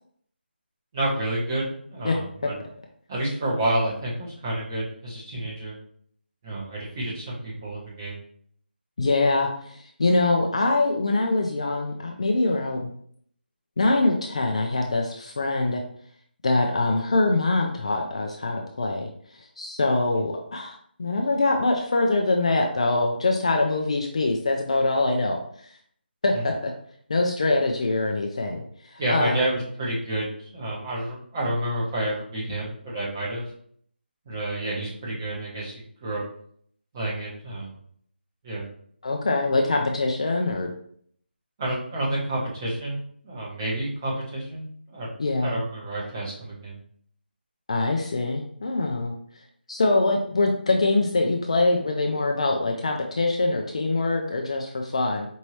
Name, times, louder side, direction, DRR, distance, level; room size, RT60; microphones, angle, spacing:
voice 1, 0.9-2.5 3.1-5.8 6.4-8.2 26.3-26.4 29.0-33.4 34.2-36.2 36.9-37.7 38.4-38.6 41.6-45.1 45.4-46.8, right 1 dB, 20° right, -6 dB, 1.1 m, -29 dB
voice 2, 9.0-12.9 13.8-15.8 16.4-19.1 19.6-25.4 26.2-26.7 27.1-29.5 39.0-40.7 45.2-45.6 47.7-49.1 49.7-55.3, left 2 dB, 35° left, 2 dB, 0.4 m, -24 dB
4.5 x 2.7 x 3.1 m, 0.62 s
figure-of-eight pair, 170°, 6 cm